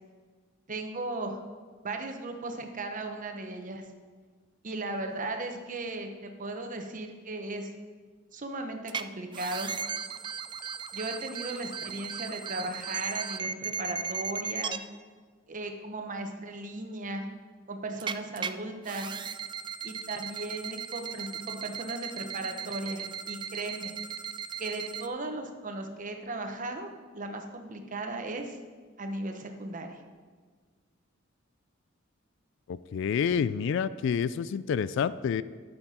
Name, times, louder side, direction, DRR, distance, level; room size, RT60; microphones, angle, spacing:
voice 1, 0.7-1.4 1.8-3.8 4.6-7.7 8.3-9.7 10.9-14.8 15.5-17.3 17.7-19.2 19.8-23.9 24.6-28.6 29.0-30.0, right 2 dB, 40° right, 5 dB, 1.0 m, -36 dB
sound 1, 8.9-9.0 9.3-14.8 18.0-18.5 18.8-25.1, right 6 dB, 25° right, 0.3 m, -36 dB
voice 2, 32.7-35.4, left 7 dB, 65° left, 17 dB, 0.3 m, -28 dB
12.0 x 6.7 x 4.3 m, 1.5 s
head